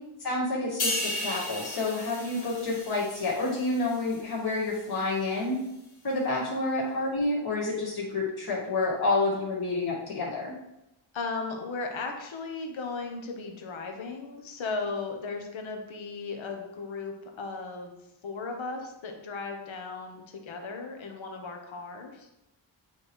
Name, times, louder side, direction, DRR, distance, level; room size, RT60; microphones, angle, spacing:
voice 1, 0.2-5.6 6.0-10.5, left 2 dB, 50° left, -6 dB, 2.1 m, -29 dB
sound 1, 0.8-4.3 4.7-4.9, left 1 dB, 90° left, 2.0 m, -35 dB
voice 2, 11.1-22.3, left 4 dB, 70° left, 3 dB, 1.1 m, -36 dB
8.6 x 3.2 x 4.4 m, 0.90 s
wide cardioid pair, 115°, 49 cm